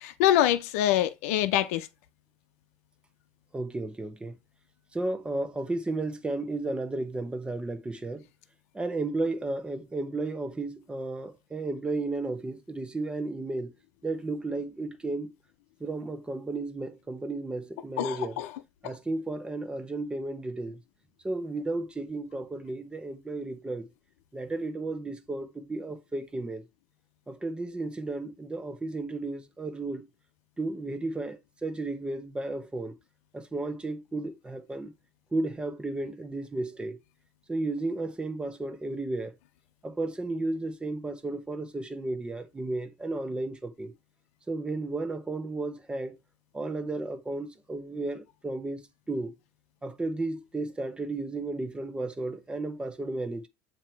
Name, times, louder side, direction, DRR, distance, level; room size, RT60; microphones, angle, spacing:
voice 1, 0.2-1.8 18.0-18.5, left 12 dB, 80° left, 0.6 m, -24 dB
voice 2, 3.5-4.4 4.9-8.3 8.7-13.7 14.0-15.3 15.8-18.4 18.8-20.8 21.2-23.9 24.3-26.6 27.3-30.1 30.6-33.0 33.3-34.9 35.3-37.0 37.5-39.3 39.8-43.9 44.5-46.2 46.5-49.3 49.8-53.5, right 2 dB, 15° right, 1.1 m, -33 dB
7.3 x 2.9 x 4.6 m
supercardioid pair, 115°, 8 cm